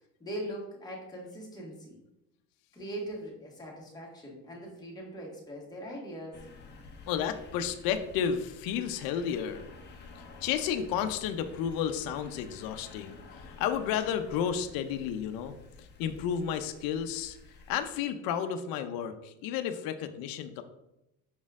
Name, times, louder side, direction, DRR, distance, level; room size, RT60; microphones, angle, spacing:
voice 1, 0.2-2.0 2.7-6.4, right 1 dB, 10° left, -3 dB, 1.6 m, -41 dB
sound 1, 6.3-17.9, left 4 dB, 25° left, 0.9 m, -51 dB
voice 2, 7.1-9.6 10.4-15.5 15.8-17.4 17.7-20.6, left 8 dB, 65° left, 8 dB, 0.7 m, -32 dB
6.2 x 4.2 x 3.6 m, 0.88 s
cardioid pair, 150°, 38 cm